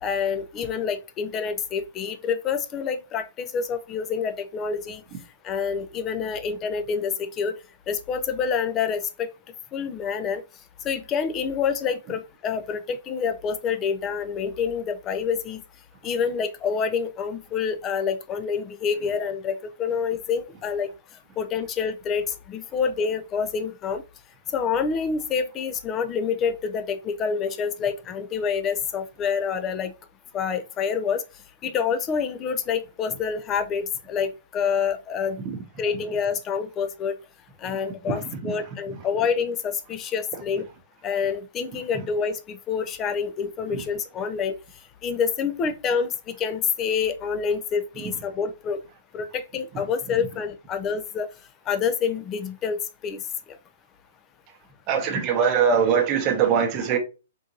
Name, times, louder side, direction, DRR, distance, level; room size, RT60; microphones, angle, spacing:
voice 1, 0.0-5.0 5.4-7.6 7.9-9.3 9.7-10.4 10.8-15.6 16.0-20.9 21.4-24.0 24.5-29.9 30.3-31.2 31.6-35.4 35.8-37.2 37.6-40.7 41.0-44.6 45.0-48.8 49.1-51.3 51.7-53.3, left 6 dB, 20° left, 0.4 m, -27 dB
voice 2, 54.9-57.0, right 7 dB, 25° right, 0.8 m, -21 dB
3.7 x 2.5 x 2.9 m
hypercardioid pair, 160°, 0 cm